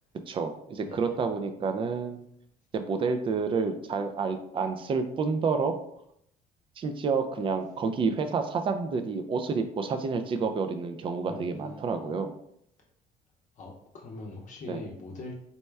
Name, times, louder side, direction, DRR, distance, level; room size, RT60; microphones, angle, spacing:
voice 1, 0.3-2.2 2.7-5.7 6.8-12.3 14.7-14.8, right 5 dB, 30° right, 7 dB, 0.4 m, -29 dB
voice 2, 11.2-12.1 13.6-15.3, left 2 dB, 50° left, -1 dB, 0.7 m, -42 dB
4.2 x 2.2 x 3.3 m, 0.73 s
cardioid pair, 110°, 17 cm